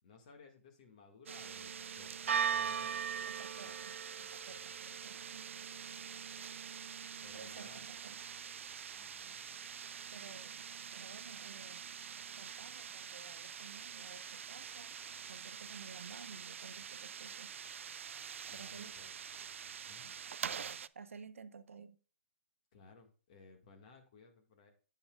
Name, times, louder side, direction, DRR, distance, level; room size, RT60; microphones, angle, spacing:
voice 1, 0.0-3.8 5.5-5.9 6.3-6.6 7.2-7.9 8.9-9.5 18.4-19.1 19.9-20.2 22.7-24.7, left 4 dB, 35° left, 1.8 m, -60 dB
sound 1, 1.3-20.9, right 7 dB, 75° right, 0.4 m, -43 dB
voice 2, 3.3-5.5 7.3-8.2 10.1-10.6 10.9-12.1 12.4-15.0 15.3-17.5 18.5-18.9 20.9-22.0, right 5 dB, 90° right, 0.8 m, -53 dB
8.8 x 8.5 x 2.4 m
hypercardioid pair, 165°, 7 cm